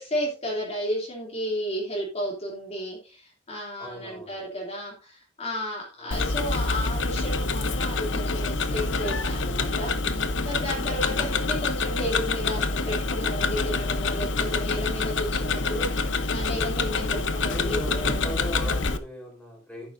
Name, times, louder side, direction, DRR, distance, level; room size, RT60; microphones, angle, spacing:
voice 1, 0.0-18.3, equal, 35° left, -3 dB, 2.9 m, -33 dB
voice 2, 3.8-4.4 6.0-6.2 10.9-11.4 17.4-19.9, equal, 5° left, -1 dB, 4.1 m, -39 dB
Tick-tock, 6.1-19.0, left 3 dB, 75° left, 0.9 m, -26 dB
11.5 x 9.3 x 2.6 m, 0.31 s
head